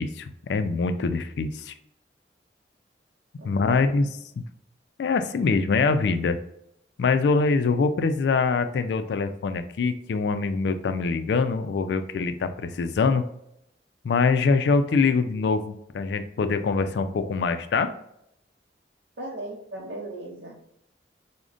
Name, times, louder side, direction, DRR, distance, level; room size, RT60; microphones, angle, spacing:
voice 1, 0.0-1.7 3.4-4.1 4.4-4.5 5.0-6.4 7.0-13.3 14.0-17.9, left 4 dB, 75° left, 9 dB, 0.3 m, -24 dB
voice 2, 3.4-3.9 19.2-20.6, right 1 dB, 75° right, -3 dB, 0.6 m, -37 dB
4.9 x 2.1 x 2.4 m, 0.76 s
head